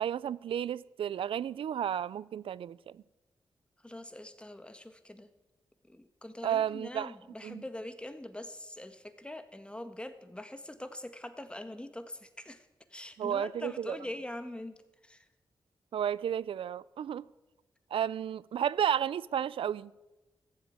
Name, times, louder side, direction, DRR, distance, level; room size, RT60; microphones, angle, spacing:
voice 1, 0.0-2.8 6.4-7.1 7.4-7.6 13.2-14.0 15.9-17.2 17.9-19.9, right 9 dB, 80° right, 0.4 m, -32 dB
voice 2, 3.8-5.3 5.8-15.3, left 1 dB, 10° left, 1.6 m, -43 dB
14.0 x 7.7 x 9.5 m
cardioid pair, 60°, 9 cm